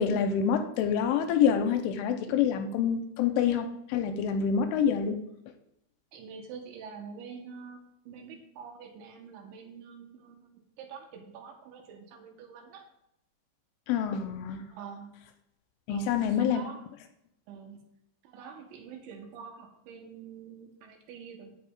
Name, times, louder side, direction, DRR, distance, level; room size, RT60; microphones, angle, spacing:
voice 1, 0.0-5.2 13.9-14.6 15.9-16.6, left 7 dB, 85° left, 7 dB, 3.0 m, -27 dB
voice 2, 6.1-7.8 8.1-10.4 10.8-12.9 14.7-15.2 15.9-16.8 17.5-17.8 18.2-21.5, right 6 dB, 75° right, 3 dB, 3.2 m, -46 dB
16.5 x 7.1 x 2.4 m, 0.81 s
omnidirectional pair, 5.7 m